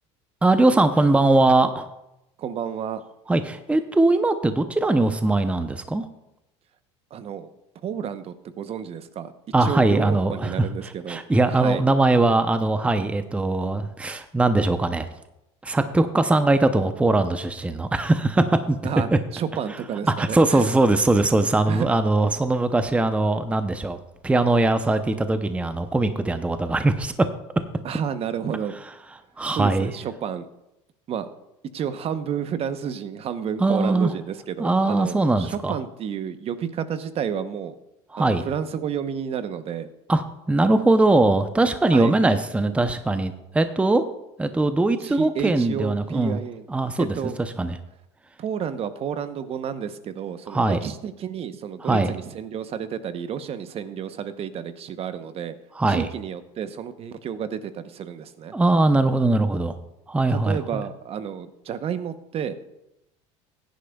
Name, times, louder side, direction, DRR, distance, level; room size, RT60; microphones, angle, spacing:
voice 1, 0.4-1.9 3.3-6.1 9.5-10.7 11.1-15.1 15.6-18.8 19.1-19.2 20.2-24.0 24.2-27.1 29.4-29.9 33.6-34.1 34.6-35.7 38.1-38.4 40.1-44.0 44.4-46.4 46.7-47.8 50.5-50.8 51.8-52.1 55.8-56.1 58.5-59.8 60.1-60.8, right 2 dB, 10° right, 9 dB, 0.7 m, -21 dB
voice 2, 2.4-3.0 7.1-7.5 7.8-9.3 9.6-11.2 11.5-11.8 18.8-20.7 21.7-21.9 27.8-28.8 29.5-30.5 31.1-31.3 31.7-37.8 38.2-39.9 41.9-42.2 45.0-46.7 47.0-47.4 48.4-55.6 55.9-58.5 60.3-62.5, right 8 dB, 40° right, 11 dB, 0.9 m, -31 dB
16.0 x 10.5 x 2.3 m, 0.88 s
supercardioid pair, 100°, 15 cm